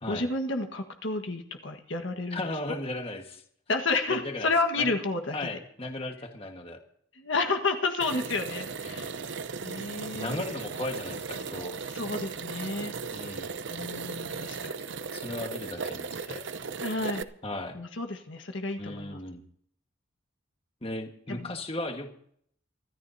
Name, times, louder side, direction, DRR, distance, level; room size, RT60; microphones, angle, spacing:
voice 1, 0.0-2.4 3.7-5.5 7.2-9.2 9.6-10.4 11.9-12.9 13.7-14.7 16.8-17.3 17.7-19.2 21.3-21.5, left 3 dB, 65° left, 5 dB, 1.6 m, -31 dB
voice 2, 2.3-3.4 4.1-4.9 5.3-6.8 8.8-9.1 10.1-11.8 13.1-13.5 15.1-16.5 17.4-17.8 18.8-19.4 20.8-22.1, left 2 dB, 30° left, 4 dB, 1.5 m, -36 dB
sound 1, 8.0-17.2, right 5 dB, 60° right, 0.8 m, -37 dB
25.0 x 14.0 x 2.8 m, 0.66 s
head